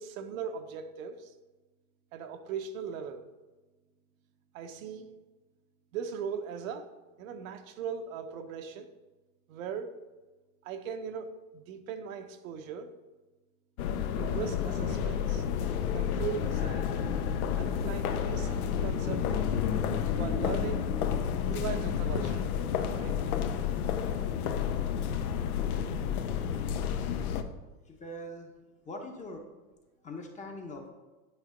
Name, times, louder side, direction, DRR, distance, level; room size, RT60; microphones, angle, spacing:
voice 1, 0.0-1.3 2.1-3.3 4.5-5.1 5.9-6.9 7.2-8.9 9.5-10.0 10.6-12.9 14.2-15.5 15.9-16.9 17.6-19.5 20.1-20.9 21.4-22.5 22.8-23.4, right 7 dB, 65° right, 0.9 m, -39 dB
sound 1, 13.8-27.4, left 8 dB, 80° left, 0.8 m, -30 dB
voice 2, 27.8-28.5 28.8-29.5 30.0-30.9, left 1 dB, 15° left, 0.9 m, -42 dB
9.0 x 3.3 x 5.2 m
supercardioid pair, 140°, 43 cm